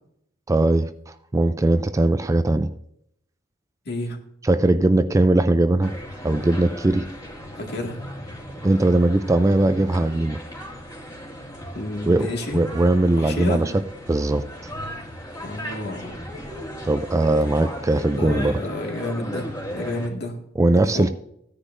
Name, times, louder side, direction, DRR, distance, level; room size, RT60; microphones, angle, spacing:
voice 1, 0.5-2.7 4.4-5.9 6.2-7.1 8.6-10.4 12.1-12.3 12.5-13.7 14.1-14.5 16.8-18.6 20.6-21.1, right 2 dB, 15° right, 0.4 m, -20 dB
voice 2, 3.9-4.3 7.6-8.1 11.7-12.6 13.2-13.7 15.4-16.1 18.1-21.1, left 1 dB, 60° left, 1.9 m, -30 dB
sound 1, 5.8-20.1, equal, 20° left, 2.2 m, -36 dB
16.0 x 9.9 x 2.6 m
head